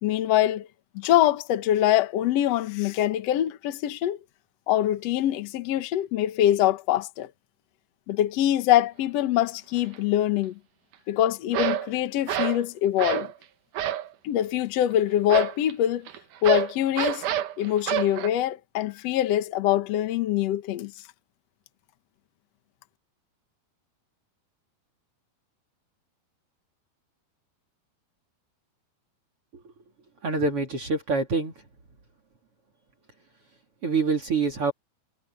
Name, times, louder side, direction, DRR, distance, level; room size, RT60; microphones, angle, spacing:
voice 1, 0.0-0.7 0.9-4.2 4.7-7.3 8.1-10.6 11.1-13.3 14.2-16.1 16.4-17.2 17.6-20.9, left 12 dB, 70° left, 1.6 m, -24 dB
sound 1, 9.8-10.0 11.5-11.9 12.3-12.6 13.0-13.3 13.7-14.1 15.3-18.3, right 11 dB, 65° right, 2.4 m, -27 dB
voice 2, 30.2-31.5 33.8-34.7, right 4 dB, 40° right, 3.2 m, -25 dB
omnidirectional pair, 4.6 m